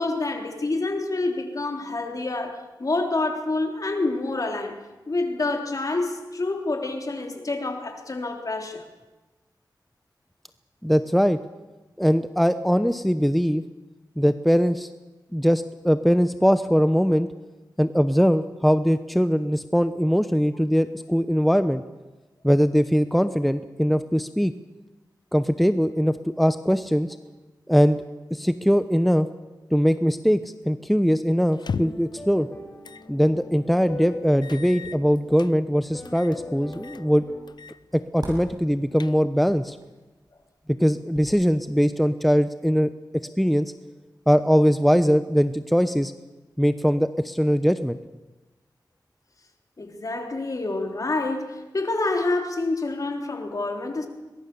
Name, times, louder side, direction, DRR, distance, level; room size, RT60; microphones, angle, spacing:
voice 1, 0.0-4.8 5.1-8.9 49.8-54.1, left 2 dB, 50° left, 4 dB, 3.6 m, -27 dB
voice 2, 10.8-11.4 12.0-13.6 14.2-14.9 15.3-17.3 17.8-21.8 22.4-24.5 25.3-27.2 27.7-28.0 28.3-29.3 29.7-30.4 30.7-32.5 33.1-37.2 37.9-39.8 40.8-42.9 43.4-43.7 44.3-46.1 46.6-48.0, equal, ahead, 11 dB, 0.9 m, -21 dB
sound 1, 31.5-32.1 32.8-33.1 33.5-33.6 34.4-35.5 36.0-36.4 36.7-37.1 37.5-37.8 38.1-38.2 38.7-39.5, left 5 dB, 70° left, 0.6 m, -36 dB
sound 2, 31.8-37.4, left 2 dB, 35° left, 4.7 m, -41 dB
sound 3, 33.9-41.8, right 1 dB, 60° right, 7.5 m, -48 dB
22.5 x 21.0 x 7.0 m, 1.1 s
wide cardioid pair, 65°, 8 cm